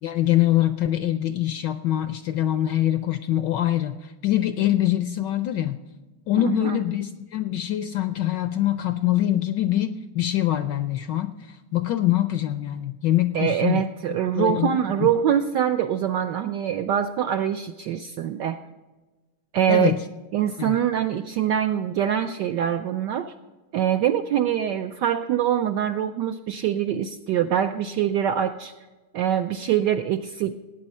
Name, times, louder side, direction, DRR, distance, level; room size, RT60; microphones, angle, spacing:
voice 1, 0.0-5.8 6.3-13.9 14.3-15.1 19.7-20.0 20.6-20.8, left 13 dB, 75° left, 10 dB, 1.0 m, -24 dB
voice 2, 13.3-18.6 19.5-20.0 20.3-23.3 23.7-28.7 29.1-30.6, right 10 dB, 80° right, 7 dB, 1.0 m, -24 dB
17.5 x 9.0 x 5.4 m, 1.2 s
omnidirectional pair, 2.4 m